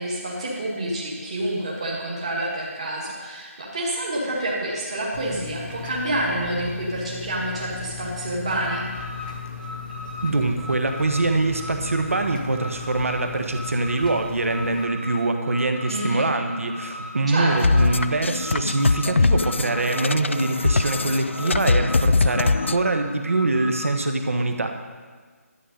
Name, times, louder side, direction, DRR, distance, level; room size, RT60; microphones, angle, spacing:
voice 1, 0.0-8.9 15.9-16.2 17.3-17.9, right 1 dB, 25° right, -5 dB, 1.6 m, -28 dB
sound 1, 5.1-14.9, left 6 dB, 35° left, 1.1 m, -37 dB
Alarm, 8.5-24.0, left 1 dB, 5° right, 1.2 m, -38 dB
voice 2, 10.2-24.7, right 2 dB, 60° right, 5 dB, 1.3 m, -24 dB
sound 2, 17.6-22.8, left 3 dB, 50° left, 0.3 m, -22 dB
12.0 x 8.7 x 5.2 m, 1.5 s
figure-of-eight pair, 180°, 8 cm